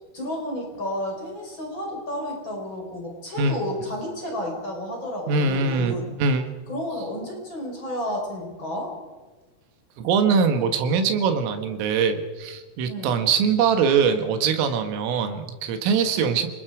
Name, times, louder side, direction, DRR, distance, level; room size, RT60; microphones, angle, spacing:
voice 1, 0.1-6.1 6.7-8.9 12.9-13.2 16.1-16.3, left 1 dB, 25° left, 0 dB, 5.3 m, -31 dB
voice 2, 5.3-6.5 10.0-16.5, right 5 dB, 85° right, 7 dB, 4.2 m, -22 dB
29.0 x 20.0 x 5.1 m, 1.3 s
omnidirectional pair, 5.7 m